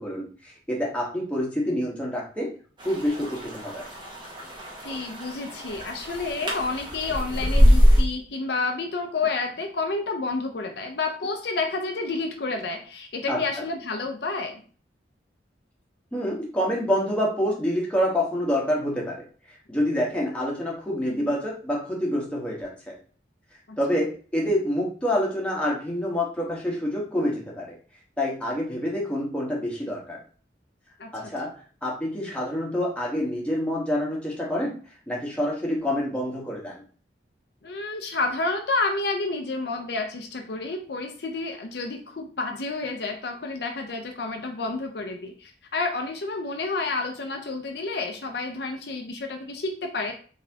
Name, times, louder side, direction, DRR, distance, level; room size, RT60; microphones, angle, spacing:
voice 1, 0.0-2.5 2.8-3.8 13.3-13.6 16.1-19.2 19.7-23.0 23.8-27.7 28.2-30.2 31.1-31.5 31.8-34.7 35.1-36.8, equal, 5° left, -4 dB, 1.1 m, -27 dB
sound 1, 2.8-8.0, equal, 25° right, 1.2 m, -23 dB
voice 2, 4.8-14.6 21.1-21.4 23.7-23.8 31.0-31.1 37.6-50.1, left 3 dB, 65° left, 3 dB, 0.6 m, -30 dB
4.0 x 3.5 x 2.8 m, 0.41 s
head